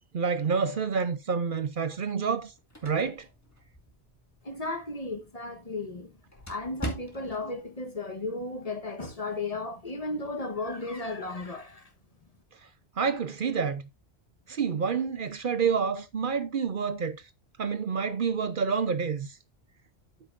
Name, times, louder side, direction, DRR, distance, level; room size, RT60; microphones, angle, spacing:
voice 1, 0.1-2.5 2.8-3.3 13.0-13.8 14.5-17.2 17.6-19.4, right 6 dB, 55° right, 0.8 m, -28 dB
sound 1, 2.3-7.5, right 1 dB, 15° left, 1.9 m, -43 dB
voice 2, 4.4-6.2 6.5-11.9, left 2 dB, 35° left, 1.3 m, -35 dB
8.6 x 8.3 x 2.5 m
omnidirectional pair, 1.1 m